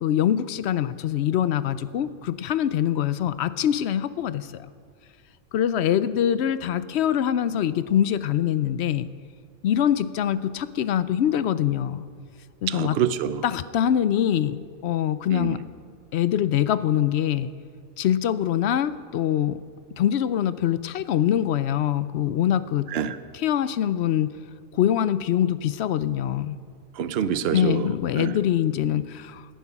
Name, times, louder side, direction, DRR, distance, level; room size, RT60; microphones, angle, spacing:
voice 1, 0.0-4.7 5.5-9.1 9.6-12.0 12.6-12.9 13.4-15.6 16.1-17.5 18.0-19.6 20.0-22.9 23.3-24.3 24.7-26.6 27.5-29.5, left 10 dB, 70° left, 15 dB, 0.8 m, -24 dB
voice 2, 12.7-13.4 15.3-15.6 22.9-23.2 26.9-28.4, right 8 dB, 60° right, 12 dB, 0.9 m, -26 dB
17.5 x 10.0 x 5.8 m, 2.1 s
omnidirectional pair, 1.2 m